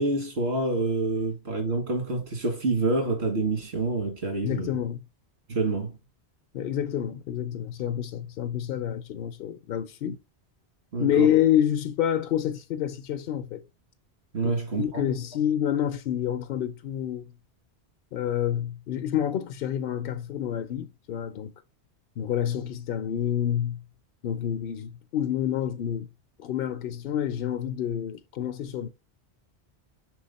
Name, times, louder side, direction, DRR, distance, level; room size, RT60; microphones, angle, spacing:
voice 1, 0.0-4.8 5.5-5.9 10.9-11.3 14.3-15.0, right 2 dB, 85° right, 2.0 m, -27 dB
voice 2, 4.4-5.0 6.5-10.2 11.0-13.6 14.4-14.5 14.8-17.3 18.1-21.5 22.2-23.8 24.2-26.1 26.4-28.9, left 10 dB, 60° left, 0.7 m, -28 dB
6.2 x 4.0 x 4.1 m
omnidirectional pair, 1.1 m